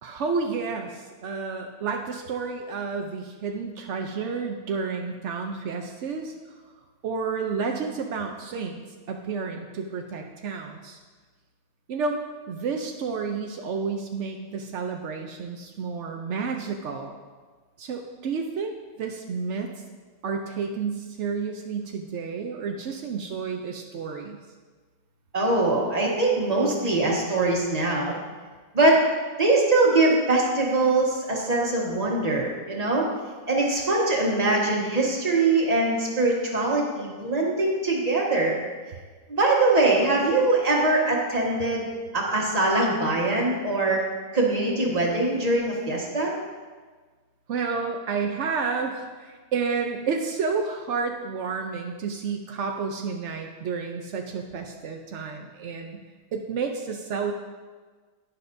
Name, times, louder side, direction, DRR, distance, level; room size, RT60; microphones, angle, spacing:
voice 1, 0.0-6.3 7.0-8.8 9.1-11.0 11.9-12.2 12.5-17.2 17.8-19.7 20.2-24.4 47.5-56.0 56.3-57.3, right 5 dB, 80° right, 2 dB, 0.6 m, -30 dB
voice 2, 25.3-28.2 28.7-29.0 29.4-33.1 33.5-38.6 39.3-41.9 42.1-44.1 44.3-46.3, right 2 dB, 20° right, -3 dB, 1.4 m, -22 dB
11.0 x 9.9 x 2.7 m, 1.4 s
omnidirectional pair, 2.0 m